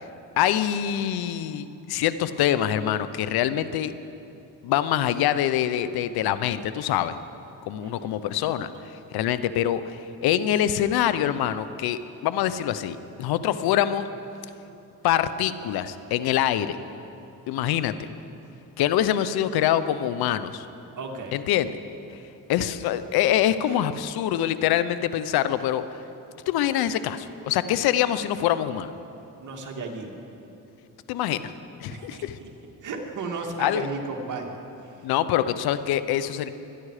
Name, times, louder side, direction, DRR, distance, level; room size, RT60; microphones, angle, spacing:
voice 1, 0.4-3.9 4.6-7.2 7.6-14.1 15.0-16.8 17.5-17.9 18.8-20.7 21.3-21.8 22.5-25.9 26.5-28.9 31.1-31.5 31.8-32.4 33.6-33.9 35.0-36.5, left 11 dB, 90° left, 13 dB, 0.8 m, -25 dB
voice 2, 7.8-8.1 21.0-21.4 23.7-23.8 29.4-30.1 31.9-32.5 32.8-34.5 34.8-35.0, right 3 dB, 55° right, 1 dB, 2.5 m, -34 dB
24.0 x 11.0 x 4.9 m, 2.8 s
cardioid pair, 80°, 36 cm